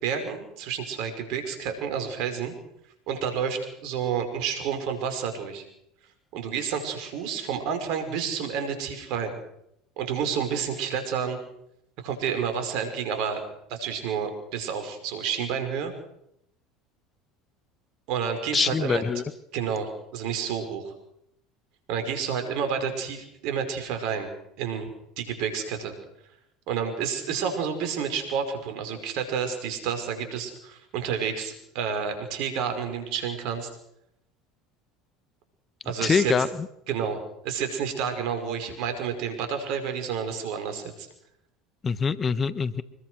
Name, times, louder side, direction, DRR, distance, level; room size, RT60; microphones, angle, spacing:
voice 1, 0.0-2.5 3.1-5.6 6.3-9.4 10.0-11.4 12.0-13.4 13.7-15.9 18.1-19.0 19.5-20.9 21.9-24.3 24.6-24.9 25.2-25.9 26.7-33.7 35.9-36.3 36.9-41.1, right 7 dB, 65° right, 7 dB, 5.4 m, -30 dB
voice 2, 18.5-19.2 36.0-36.5 41.8-42.8, left 5 dB, 30° left, 14 dB, 1.4 m, -24 dB
26.0 x 21.5 x 6.4 m, 0.78 s
hypercardioid pair, 75°, 0 cm